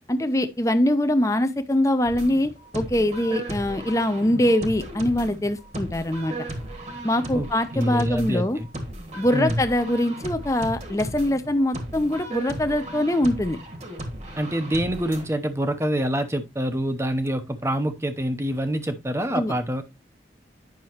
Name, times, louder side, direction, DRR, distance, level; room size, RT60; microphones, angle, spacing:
voice 1, 0.1-6.3 7.0-8.6 9.2-13.6 19.3-19.5, left 1 dB, 15° left, 0.7 m, -23 dB
sound 1, 2.0-15.3, right 1 dB, 40° right, 1.4 m, -36 dB
voice 2, 7.7-8.7 9.3-9.6 14.4-19.8, equal, 15° right, 0.8 m, -26 dB
9.5 x 6.0 x 3.0 m
head